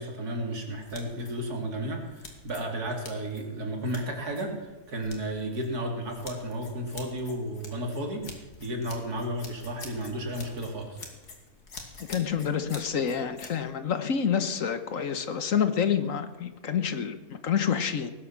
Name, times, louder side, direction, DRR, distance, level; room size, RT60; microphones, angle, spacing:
voice 1, 0.0-11.0, right 1 dB, 75° right, 2 dB, 3.4 m, -33 dB
sound 1, 0.6-13.6, left 3 dB, 85° left, 3.1 m, -48 dB
voice 2, 12.1-18.1, left 7 dB, 60° left, 10 dB, 1.4 m, -28 dB
18.5 x 10.5 x 7.3 m, 1.2 s
omnidirectional pair, 1.6 m